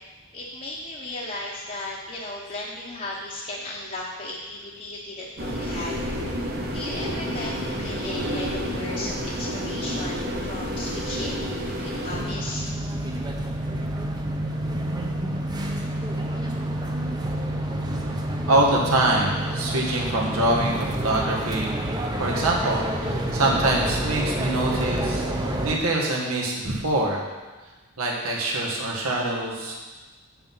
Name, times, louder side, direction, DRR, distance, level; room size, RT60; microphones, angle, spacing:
voice 1, 0.3-6.0 6.7-7.5 7.8-11.5 11.8-12.7, left 2 dB, 35° left, -4 dB, 1.0 m, -35 dB
sound 1, 5.4-12.2, equal, 45° right, 1.2 m, -30 dB
sound 2, 12.1-25.8, right 1 dB, 20° right, 0.7 m, -28 dB
voice 2, 18.5-21.8 22.2-25.2 25.6-27.2 28.0-29.8, right 2 dB, 85° right, -2 dB, 1.9 m, -24 dB
7.7 x 6.9 x 5.6 m, 1.3 s
head